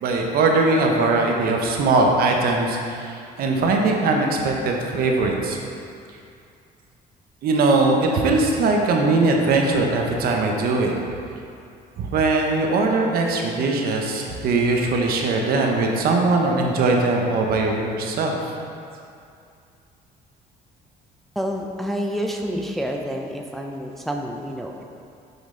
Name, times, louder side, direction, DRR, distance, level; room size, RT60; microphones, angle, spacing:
voice 1, 0.0-5.6 7.4-10.9 12.0-18.5, right 3 dB, 65° right, 1 dB, 0.9 m, -20 dB
voice 2, 21.4-24.8, equal, ahead, 1 dB, 0.4 m, -28 dB
6.0 x 5.3 x 3.8 m, 2.5 s
cardioid pair, 110°, 17 cm